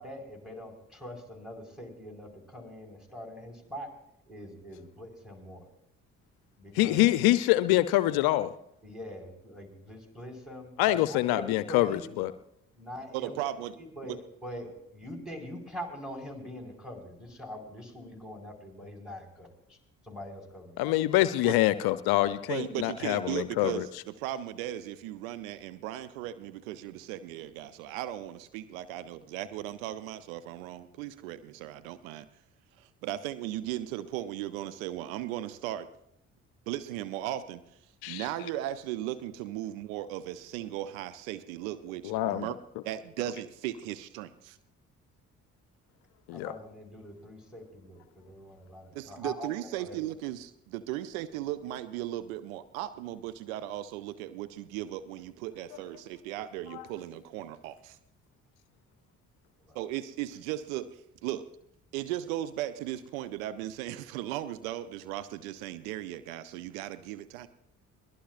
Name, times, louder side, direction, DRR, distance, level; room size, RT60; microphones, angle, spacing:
voice 1, 0.0-3.9 4.3-5.6 6.6-7.0 7.4-7.5 8.8-12.0 12.8-13.4 13.8-19.8 20.0-21.0 46.3-49.5 49.8-50.0 59.6-59.8, equal, ahead, 1 dB, 4.8 m, -43 dB
voice 2, 6.7-8.5 10.8-12.3 20.8-23.8 38.0-38.2 42.0-42.5 46.3-46.5 56.7-56.8, left 15 dB, 65° left, 14 dB, 0.6 m, -25 dB
voice 3, 13.1-13.8 14.0-14.2 21.4-21.6 22.5-32.3 32.8-35.9 36.7-37.6 38.1-42.6 42.8-44.6 48.9-58.0 59.7-61.5 61.9-67.5, right 13 dB, 75° right, 13 dB, 0.7 m, -37 dB
22.5 x 18.5 x 2.5 m, 0.78 s
hypercardioid pair, 45°, 41 cm